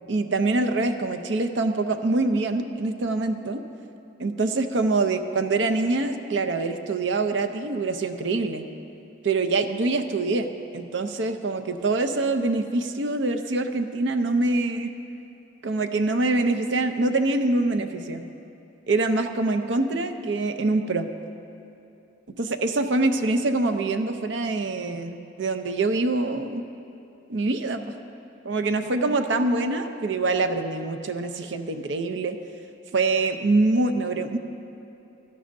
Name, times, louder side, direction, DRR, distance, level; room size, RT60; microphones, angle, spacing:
voice 1, 0.1-3.6 4.2-8.7 9.2-14.9 15.6-18.3 18.9-21.1 22.3-26.6 27.3-27.9 28.4-32.4 32.9-34.4, right 2 dB, 70° right, 7 dB, 0.6 m, -25 dB
16.5 x 12.0 x 2.6 m, 2.8 s
head